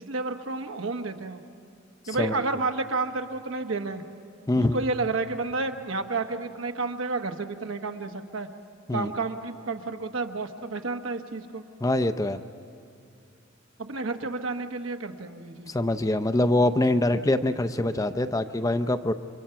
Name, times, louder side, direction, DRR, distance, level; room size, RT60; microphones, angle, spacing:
voice 1, 0.1-1.4 2.1-4.0 4.7-8.5 8.9-11.6 13.8-15.7, right 3 dB, 75° right, 5 dB, 1.2 m, -30 dB
voice 2, 2.1-2.4 4.5-4.8 8.9-9.1 11.8-12.4 15.7-19.1, left 1 dB, 15° left, 10 dB, 0.5 m, -24 dB
29.0 x 25.0 x 5.8 m, 2.5 s
head